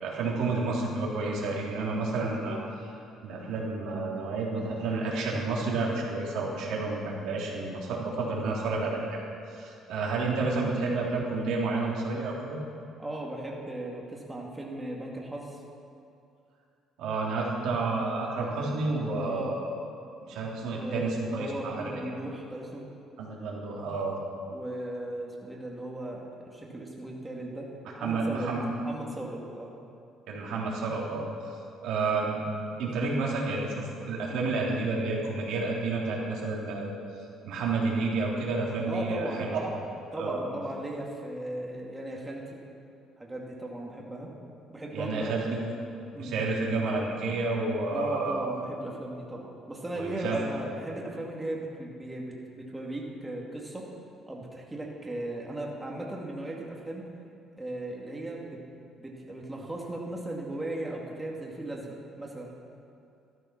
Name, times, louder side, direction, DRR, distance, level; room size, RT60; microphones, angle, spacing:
voice 1, 0.0-2.9 3.2-9.2 9.5-12.6 17.0-19.7 20.3-21.9 23.2-24.2 28.0-28.7 30.3-31.3 31.8-32.4 32.8-37.0 37.4-39.7 40.1-40.5 44.9-45.8 46.2-48.5 49.9-50.4, right 3 dB, 80° right, -4 dB, 3.2 m, -30 dB
voice 2, 13.0-15.6 19.1-19.6 20.7-22.9 24.5-27.7 28.0-28.5 28.8-29.8 38.9-39.5 40.1-42.6 43.2-44.3 44.7-45.4 46.1-46.3 47.9-53.9 54.3-57.1 57.6-58.6 59.0-62.5, right 1 dB, 10° right, -2 dB, 2.4 m, -37 dB
13.0 x 12.5 x 6.0 m, 2.5 s
cardioid pair, 105°, 0 cm